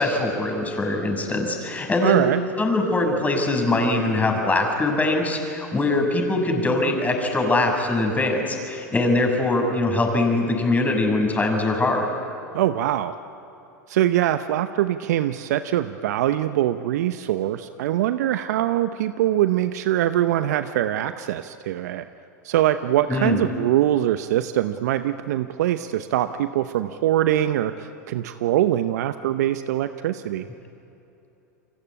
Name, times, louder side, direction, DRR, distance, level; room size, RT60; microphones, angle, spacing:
voice 1, 0.0-2.3 2.6-12.1 23.1-23.4, left 2 dB, 15° left, 3 dB, 6.2 m, -22 dB
voice 2, 2.0-2.4 12.5-13.1 13.9-22.0 22.4-30.5, right 12 dB, 70° right, 11 dB, 0.9 m, -23 dB
28.5 x 24.0 x 8.6 m, 3.0 s
hypercardioid pair, 90°, 9 cm